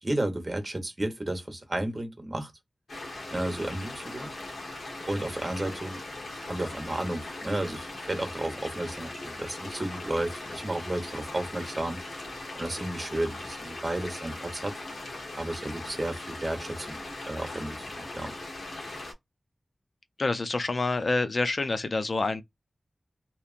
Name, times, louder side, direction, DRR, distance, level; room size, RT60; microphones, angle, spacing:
voice 1, 0.0-2.5 3.3-4.3 5.1-6.0 6.4-12.0 12.5-14.8 15.4-17.0 17.3-18.3, right 1 dB, 35° right, 1.1 m, -32 dB
sound 1, 2.9-19.1, left 2 dB, 85° left, 1.0 m, -39 dB
voice 2, 20.2-22.4, left 3 dB, 55° left, 0.4 m, -27 dB
2.9 x 2.4 x 2.4 m
wide cardioid pair, 85°, 0 cm